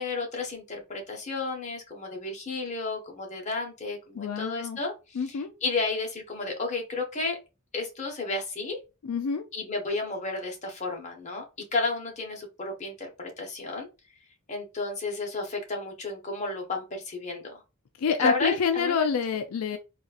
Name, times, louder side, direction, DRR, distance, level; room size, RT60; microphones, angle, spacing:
voice 1, 0.0-7.4 7.7-8.8 9.5-11.4 11.7-13.9 14.5-17.6 18.2-19.1, left 3 dB, 35° left, 1.0 m, -32 dB
voice 2, 4.2-4.8 5.2-5.5 9.0-9.4 18.0-19.8, left 6 dB, 80° left, 0.4 m, -27 dB
4.1 x 2.4 x 2.4 m
head